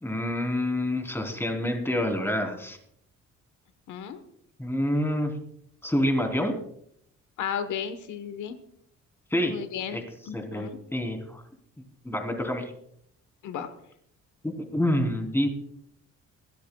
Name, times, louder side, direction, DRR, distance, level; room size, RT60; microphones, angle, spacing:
voice 1, 0.0-2.8 4.6-5.3 5.8-6.6 9.3-9.5 9.9-10.0 10.3-11.4 12.0-12.6 14.4-15.5, left 1 dB, 10° left, 3 dB, 3.2 m, -27 dB
voice 2, 3.9-4.2 7.4-8.6 9.4-10.8 13.4-13.7, left 8 dB, 80° left, 9 dB, 1.2 m, -34 dB
22.0 x 13.0 x 2.3 m, 0.70 s
cardioid pair, 90°, 30 cm